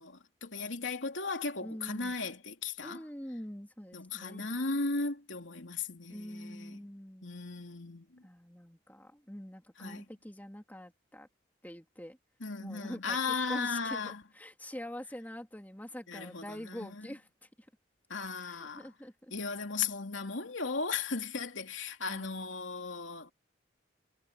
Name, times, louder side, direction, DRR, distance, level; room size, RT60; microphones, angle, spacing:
voice 1, 0.0-3.0 3.9-6.8 7.2-8.2 9.8-10.0 12.4-14.2 16.1-17.1 18.1-18.9 19.3-23.3, left 4 dB, 85° left, 2.9 m, -36 dB
voice 2, 1.6-2.1 2.8-4.6 6.1-7.3 8.2-11.3 11.6-12.2 12.6-13.2 13.5-17.7 18.4-19.3, equal, 10° left, 2.7 m, -45 dB
head